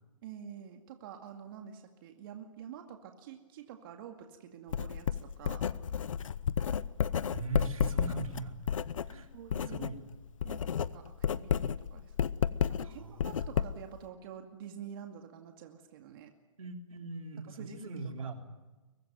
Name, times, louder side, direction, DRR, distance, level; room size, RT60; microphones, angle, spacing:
voice 1, 0.2-5.7 9.3-9.9 10.4-12.1 12.8-16.3 17.6-18.3, right 8 dB, 40° right, 4 dB, 2.2 m, -48 dB
Writing, 4.7-10.0 10.3-14.0, left 8 dB, 70° left, 0.9 m, -32 dB
voice 2, 7.3-8.6 9.1-9.3 9.7-10.0 12.8-13.4 16.6-18.4, right 3 dB, 85° right, 3 dB, 3.7 m, -40 dB
23.5 x 19.5 x 9.4 m, 1.2 s
hypercardioid pair, 145°, 17 cm